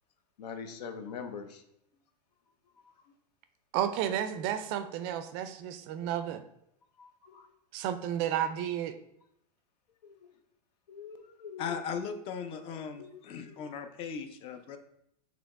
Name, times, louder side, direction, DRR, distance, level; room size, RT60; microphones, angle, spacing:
voice 1, 0.4-1.6 2.8-2.9 7.0-7.5 10.0-10.2 10.9-11.7 13.0-13.6, left 6 dB, 80° left, 7 dB, 0.8 m, -44 dB
voice 2, 3.7-6.4 7.7-8.9, right 10 dB, 40° right, 10 dB, 0.4 m, -32 dB
voice 3, 11.6-14.8, left 6 dB, 25° left, 8 dB, 0.4 m, -38 dB
5.0 x 3.0 x 3.6 m, 0.75 s
supercardioid pair, 140°, 21 cm